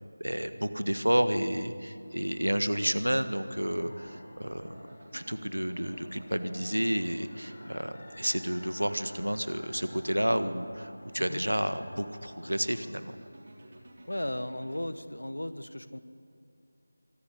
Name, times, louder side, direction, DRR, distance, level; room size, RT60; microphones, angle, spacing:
voice 1, 0.2-4.9 5.1-13.1, equal, 80° right, 10 dB, 1.5 m, -30 dB
sound 1, 1.8-12.9, left 1 dB, 45° left, 3.5 m, -54 dB
sound 2, 2.7-14.8, right 1 dB, 35° right, 3.6 m, -52 dB
voice 2, 14.1-16.0, left 1 dB, 70° left, 12 dB, 1.3 m, -35 dB
24.0 x 12.5 x 10.0 m, 2.5 s
figure-of-eight pair, 165°, 0 cm